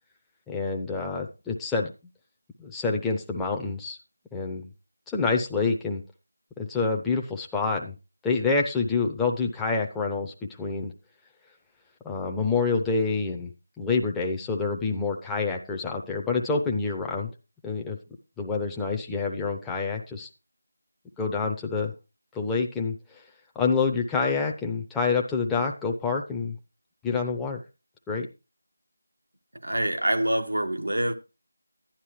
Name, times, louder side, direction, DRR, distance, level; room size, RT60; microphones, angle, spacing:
voice 1, 0.5-1.9 2.6-4.0 4.3-4.6 5.1-6.0 6.6-7.9 8.2-10.9 12.0-13.5 13.8-17.3 17.6-18.0 18.4-20.3 21.2-21.9 22.3-22.9 23.6-26.6 27.0-27.6 28.1-28.3, left 4 dB, 5° left, 0.6 m, -27 dB
voice 2, 29.6-31.1, right 1 dB, 85° right, 1.4 m, -25 dB
11.0 x 10.5 x 3.1 m
figure-of-eight pair, 170°, 0 cm